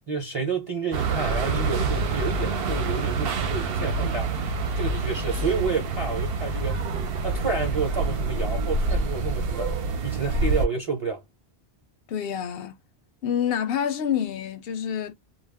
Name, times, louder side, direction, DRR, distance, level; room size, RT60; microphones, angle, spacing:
voice 1, 0.1-4.3 4.7-6.9 7.2-9.8 10.0-11.2, right 4 dB, 35° right, 0.6 m, -30 dB
sound 1, 0.9-10.7, right 3 dB, 65° right, 0.8 m, -26 dB
voice 2, 12.1-12.8 13.2-15.1, left 8 dB, 65° left, 0.7 m, -27 dB
2.3 x 2.1 x 3.3 m
omnidirectional pair, 1.1 m